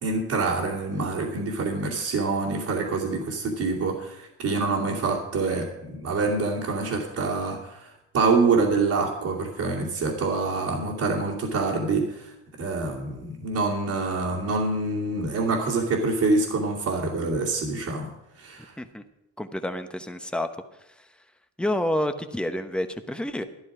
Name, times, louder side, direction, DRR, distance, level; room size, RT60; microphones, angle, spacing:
voice 1, 0.0-18.1 18.4-18.7, right 3 dB, 65° right, -7 dB, 2.7 m, -26 dB
voice 2, 19.4-20.5 21.6-23.4, left 1 dB, 5° left, 8 dB, 0.9 m, -28 dB
13.0 x 11.0 x 4.9 m, 0.91 s
cardioid pair, 90°, 30 cm